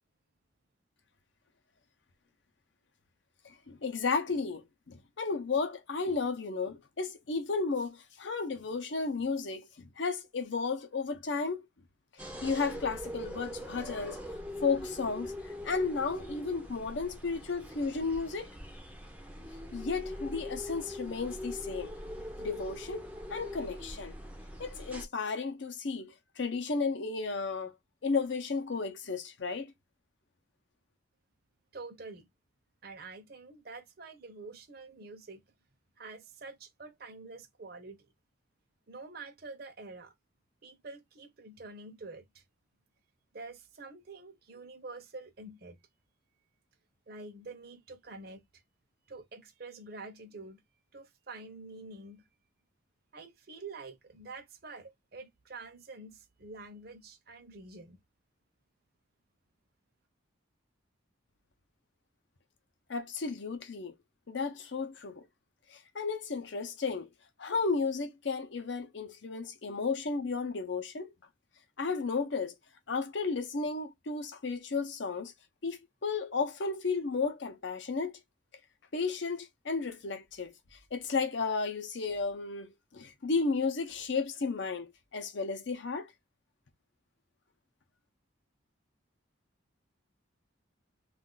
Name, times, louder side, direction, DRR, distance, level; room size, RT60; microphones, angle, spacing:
voice 1, 3.4-11.7 12.2-14.2 14.6-18.5 19.7-21.9 22.4-24.1 24.6-27.7 28.0-29.7 62.9-63.9 64.3-65.2 65.7-67.1 67.4-71.1 71.8-72.5 72.9-75.3 75.6-78.2 78.9-80.5 80.9-86.1, left 4 dB, 65° left, 0.6 m, -33 dB
Birds in Cuenca Spain, 12.2-25.1, left 1 dB, 5° right, 0.5 m, -42 dB
voice 2, 31.7-32.3 32.8-35.4 36.0-38.0 38.9-40.1 40.6-42.4 43.3-45.8 47.1-48.6 49.1-50.6 50.9-52.2 53.1-58.0, right 3 dB, 50° right, 0.7 m, -47 dB
2.4 x 2.3 x 3.8 m
head